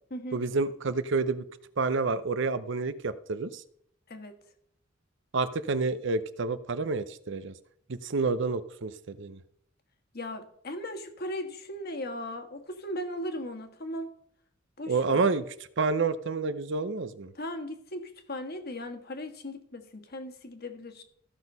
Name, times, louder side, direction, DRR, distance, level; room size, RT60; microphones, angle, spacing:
voice 1, 0.3-1.4 1.8-3.6 5.3-7.5 7.9-9.4 14.9-15.4 15.8-17.3, right 4 dB, 65° right, 14 dB, 0.7 m, -29 dB
voice 2, 10.1-14.1 14.8-15.3 17.3-21.0, left 1 dB, 55° left, 6 dB, 1.6 m, -37 dB
14.5 x 6.2 x 5.4 m, 0.67 s
head